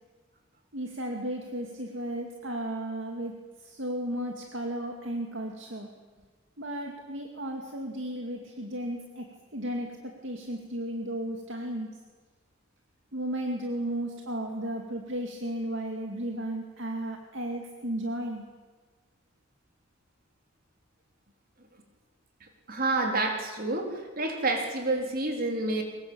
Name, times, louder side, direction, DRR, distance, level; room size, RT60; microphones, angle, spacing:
voice 1, 0.7-5.9 6.6-12.0 13.1-18.4, right 1 dB, 60° right, 2 dB, 2.5 m, -34 dB
voice 2, 22.7-25.8, right 2 dB, 45° right, 3 dB, 3.9 m, -28 dB
23.5 x 21.5 x 8.9 m, 1.4 s
head